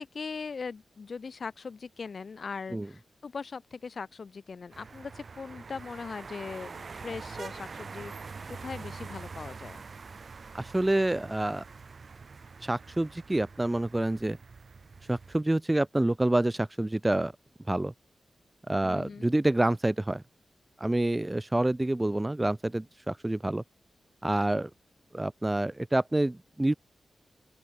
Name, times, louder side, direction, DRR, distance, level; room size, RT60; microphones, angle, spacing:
voice 1, 0.0-9.8 18.8-19.3, left 5 dB, 45° left, 3.6 m, -40 dB
sound 1, 4.7-15.4, right 4 dB, 45° right, 1.4 m, -45 dB
voice 2, 10.5-11.6 12.6-14.4 15.1-17.3 17.7-17.9 18.7-20.2 20.8-23.6 24.2-24.7 25.1-26.7, right 1 dB, 10° right, 0.7 m, -27 dB
open air
wide cardioid pair, 155°, 0 cm